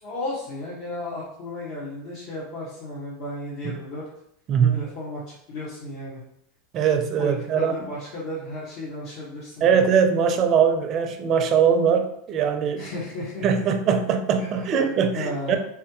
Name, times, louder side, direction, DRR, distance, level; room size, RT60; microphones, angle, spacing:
voice 1, 0.0-4.1 4.7-6.2 7.2-9.9 12.8-13.6 14.4-15.6, left 1 dB, 60° left, -8 dB, 1.4 m, -34 dB
voice 2, 4.5-4.8 6.7-7.7 9.6-12.9 13.4-15.6, right 7 dB, 40° right, 6 dB, 0.5 m, -21 dB
3.5 x 3.2 x 3.0 m, 0.75 s
supercardioid pair, 130°, 0 cm